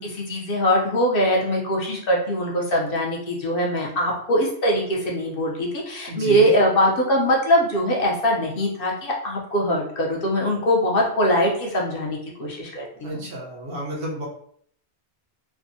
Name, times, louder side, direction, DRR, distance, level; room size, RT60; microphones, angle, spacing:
voice 1, 0.0-13.2, equal, 60° left, -2 dB, 0.8 m, -22 dB
voice 2, 6.1-6.5 13.0-14.3, right 1 dB, 70° right, -2 dB, 1.1 m, -32 dB
3.3 x 2.0 x 2.6 m, 0.63 s
omnidirectional pair, 1.1 m